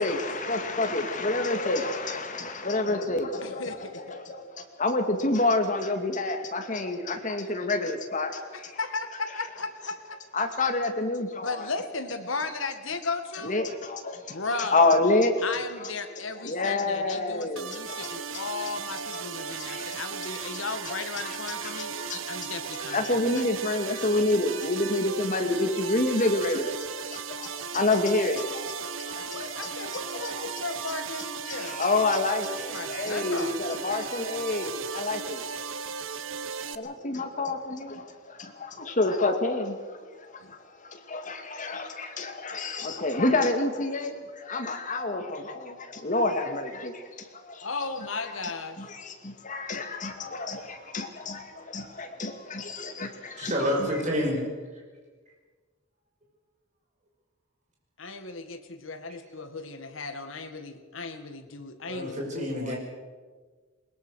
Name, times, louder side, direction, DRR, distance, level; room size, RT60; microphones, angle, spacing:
voice 1, 0.0-8.7 10.3-11.6 13.4-15.4 15.8-15.9 16.4-18.1 18.3-18.5 19.1-19.9 20.4-20.5 20.9-21.4 21.6-22.4 22.9-30.5 31.6-35.4 36.7-40.0 40.3-47.7 48.8-53.5 53.8-53.9, left 2 dB, 40° left, 5 dB, 2.4 m, -28 dB
voice 2, 3.4-4.2 8.8-10.2 11.4-13.6 14.3-14.8 15.4-21.9 22.3-23.5 29.0-31.8 32.5-33.6 40.4-40.5 47.6-48.8 58.0-62.7, left 3 dB, 70° left, 8 dB, 2.0 m, -36 dB
sound 1, 17.6-36.8, right 6 dB, 70° right, 1.0 m, -36 dB
voice 3, 53.4-54.4 61.9-62.8, equal, 40° right, -1 dB, 5.4 m, -28 dB
21.0 x 21.0 x 6.5 m, 1.4 s
head